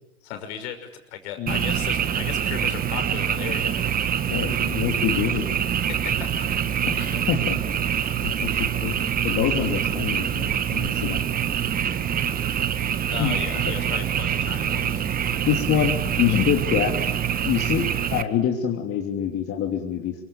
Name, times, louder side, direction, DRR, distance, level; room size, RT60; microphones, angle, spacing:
voice 1, 0.2-3.9 5.8-6.5 7.0-7.2 13.1-15.1, left 9 dB, 55° left, 7 dB, 5.9 m, -36 dB
Frog, 1.5-18.2, right 8 dB, 20° right, 1.5 m, -25 dB
voice 2, 4.3-5.5 6.9-7.0 7.3-7.6 8.2-8.5 8.8-9.0 9.2-10.5 10.7-11.2 13.2-13.4 13.6-13.7 15.4-16.9 17.4-20.1, left 9 dB, 35° left, 2 dB, 3.0 m, -25 dB
27.5 x 24.0 x 8.8 m, 0.91 s
hypercardioid pair, 105°, 39 cm